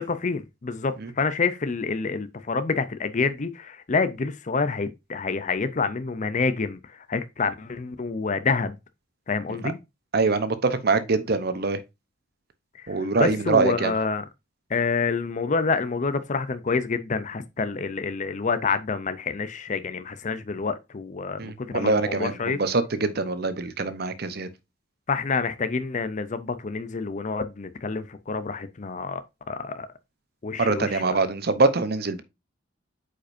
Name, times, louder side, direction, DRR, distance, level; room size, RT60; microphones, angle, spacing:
voice 1, 0.1-8.8 9.3-9.8 12.8-14.3 14.7-22.6 25.1-29.2 29.5-29.9 30.4-31.2, left 4 dB, 40° left, 0.5 m, -27 dB
voice 2, 10.1-11.8 12.9-13.9 21.4-22.3 22.6-24.5 30.6-32.2, right 3 dB, 50° right, 0.8 m, -24 dB
8.5 x 5.0 x 2.6 m
head